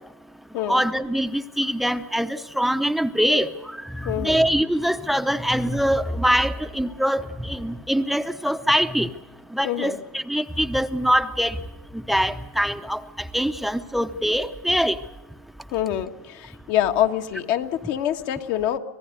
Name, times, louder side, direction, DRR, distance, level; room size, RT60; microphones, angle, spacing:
voice 1, 0.7-3.5 3.8-9.1 9.5-11.5 12.1-13.0 13.3-15.0, equal, ahead, 10 dB, 0.7 m, -23 dB
voice 2, 4.0-4.4 9.6-10.0 15.7-18.8, left 11 dB, 60° left, 6 dB, 1.5 m, -25 dB
26.0 x 18.0 x 6.6 m, 1.1 s
supercardioid pair, 120°, 8 cm